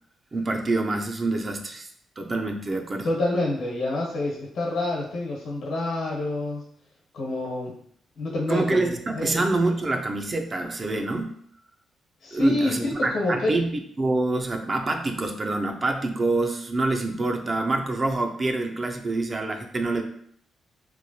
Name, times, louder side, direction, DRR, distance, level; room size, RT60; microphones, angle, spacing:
voice 1, 0.3-1.9 2.2-3.1 8.5-11.3 12.3-13.7 14.0-20.0, right 2 dB, 30° right, 4 dB, 0.4 m, -26 dB
voice 2, 3.0-6.7 7.1-7.8 8.2-9.4 12.2-13.6, left 2 dB, 75° left, -2 dB, 1.1 m, -27 dB
3.0 x 2.2 x 2.7 m, 0.64 s
cardioid pair, 100°, 0 cm